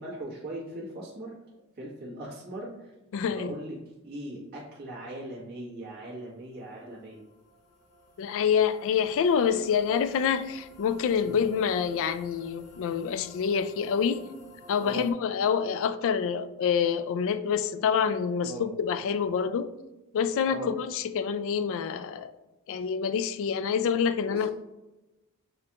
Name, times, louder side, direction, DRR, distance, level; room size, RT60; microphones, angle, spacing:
voice 1, 0.0-1.3 1.8-2.9 3.3-3.8 4.0-7.2 11.2-11.4 14.8-15.0 18.4-18.7 20.5-20.7 24.3-24.5, right 1 dB, 45° right, 1.4 m, -39 dB
voice 2, 3.1-3.6 8.2-14.2 14.7-19.7 20.1-22.3 22.7-24.5, left 7 dB, 60° left, 0.3 m, -27 dB
sound 1, 6.6-15.1, left 2 dB, 85° left, 0.7 m, -52 dB
6.8 x 2.4 x 2.8 m
head